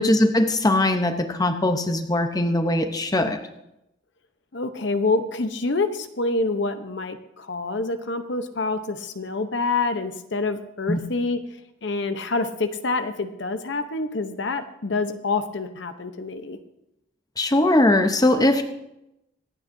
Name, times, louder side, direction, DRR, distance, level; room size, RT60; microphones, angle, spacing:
voice 1, 0.0-3.4 10.9-11.0 17.4-18.6, left 1 dB, 20° left, 6 dB, 0.7 m, -20 dB
voice 2, 4.5-11.4 11.8-16.6, left 3 dB, 60° left, 9 dB, 0.8 m, -27 dB
25.5 x 8.9 x 2.6 m, 0.87 s
head